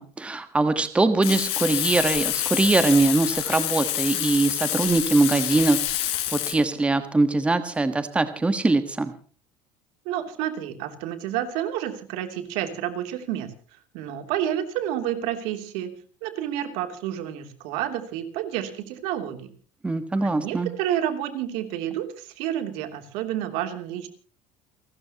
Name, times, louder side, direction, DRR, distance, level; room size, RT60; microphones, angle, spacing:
voice 1, 0.0-9.1 19.8-20.7, right 3 dB, 10° right, 10 dB, 1.3 m, -22 dB
Frying (food), 1.2-6.5, left 13 dB, 65° left, 5.1 m, -27 dB
voice 2, 10.0-13.5 13.9-15.9 16.2-19.5 20.2-24.1, right 11 dB, 75° right, 7 dB, 3.0 m, -30 dB
29.5 x 13.0 x 2.9 m, 0.41 s
cardioid pair, 140°, 11 cm